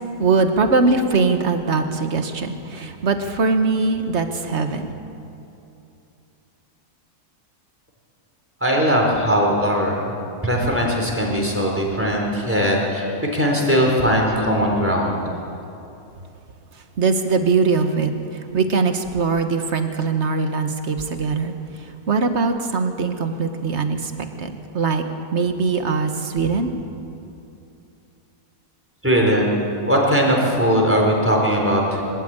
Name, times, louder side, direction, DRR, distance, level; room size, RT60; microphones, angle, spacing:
voice 1, 0.2-4.9 17.0-25.0 25.3-26.7, right 4 dB, 45° right, 7 dB, 1.5 m, -21 dB
voice 2, 8.6-10.2 10.4-13.1 13.3-15.1 29.0-32.0, equal, 10° right, -1 dB, 3.8 m, -19 dB
23.0 x 13.0 x 8.9 m, 2.8 s
omnidirectional pair, 1.7 m